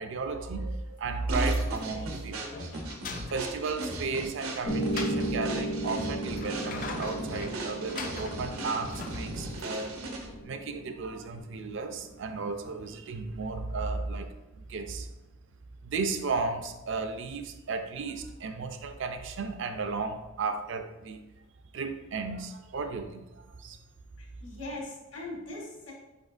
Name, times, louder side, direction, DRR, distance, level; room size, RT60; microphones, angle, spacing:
voice 1, 0.0-2.4 3.3-10.0 10.4-14.3 14.6-15.1 15.8-21.2 21.7-23.8, right 4 dB, 60° right, 7 dB, 0.4 m, -34 dB
sound 1, 1.3-1.9 2.3-3.6 4.5-5.3 6.1-9.8, left 4 dB, 40° left, 0.3 m, -42 dB
sound 2, 1.3-10.4, right 1 dB, 85° right, 0.8 m, -38 dB
Piano, 4.6-12.7, right 1 dB, 90° left, 1.5 m, -36 dB
voice 2, 24.2-25.9, left 2 dB, 60° left, -2 dB, 1.4 m, -40 dB
5.0 x 4.2 x 2.5 m, 1.0 s
head